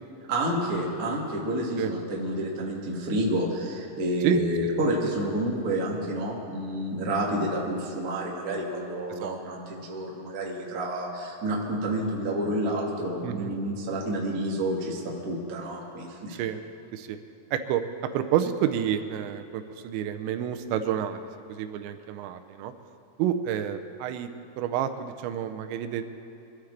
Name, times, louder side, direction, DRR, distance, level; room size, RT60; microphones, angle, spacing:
voice 1, 0.3-16.4, right 1 dB, 50° right, -3 dB, 1.0 m, -29 dB
voice 2, 17.5-17.8 18.1-22.7 23.2-24.3 24.6-26.0, right 10 dB, 85° right, 8 dB, 2.9 m, -29 dB
23.5 x 13.0 x 3.4 m, 2.9 s
omnidirectional pair, 5.2 m